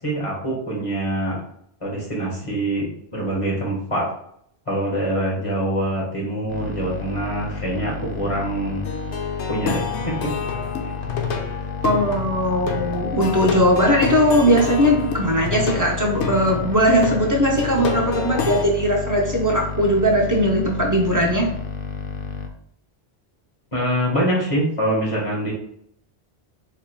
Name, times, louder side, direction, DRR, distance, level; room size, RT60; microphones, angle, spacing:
voice 1, 0.0-1.4 1.8-4.0 4.7-8.8 9.5-10.1 23.7-25.5, right 1 dB, 30° left, -4 dB, 1.5 m, -24 dB
sound 1, 6.5-22.5, left 5 dB, 60° left, 0.6 m, -31 dB
Plucked string instrument, 8.8-18.6, left 5 dB, 90° left, 0.9 m, -28 dB
voice 2, 11.8-21.5, equal, 20° right, -1 dB, 0.5 m, -19 dB
4.5 x 3.5 x 2.2 m, 0.67 s
omnidirectional pair, 1.1 m